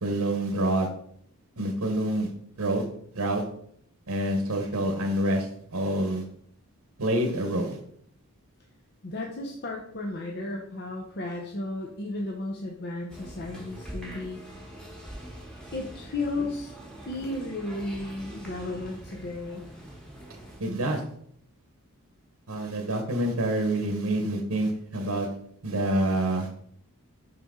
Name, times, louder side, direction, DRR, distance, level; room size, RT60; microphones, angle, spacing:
voice 1, 0.0-0.9 1.6-2.3 2.6-2.8 3.1-3.4 4.1-6.2 7.0-7.8 20.6-21.0 22.5-25.3 25.6-26.5, right 1 dB, 80° right, 3 dB, 1.0 m, -27 dB
voice 2, 9.0-14.4 15.7-16.7 17.1-19.7, left 2 dB, 45° left, 0 dB, 0.7 m, -34 dB
sound 1, 13.1-20.6, right 1 dB, 5° left, 1.2 m, -43 dB
5.8 x 5.5 x 3.7 m, 0.67 s
head